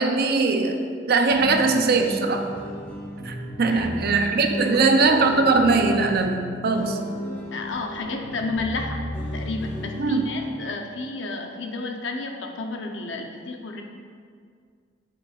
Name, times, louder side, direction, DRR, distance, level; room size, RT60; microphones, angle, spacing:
voice 1, 0.0-2.5 3.2-7.0 10.0-10.2, right 3 dB, 55° right, 5 dB, 0.6 m, -21 dB
sound 1, 1.3-10.8, equal, 10° left, 1.5 m, -34 dB
voice 2, 7.5-9.0 9.3-13.8, left 3 dB, 75° left, 3 dB, 0.7 m, -31 dB
8.3 x 7.0 x 2.4 m, 2.1 s
head